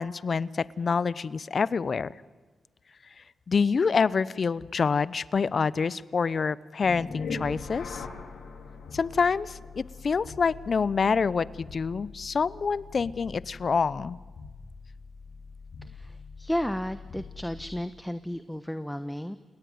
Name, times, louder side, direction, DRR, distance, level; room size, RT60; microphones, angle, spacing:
voice 1, 0.0-2.1 3.5-8.0 8.9-14.2, left 5 dB, 55° left, 19 dB, 0.7 m, -27 dB
sound 1, 6.8-17.9, left 4 dB, 80° left, 3.9 m, -42 dB
voice 2, 15.8-19.4, equal, 5° left, 11 dB, 1.1 m, -33 dB
29.5 x 18.5 x 9.5 m, 1.3 s
cardioid pair, 60°, 0 cm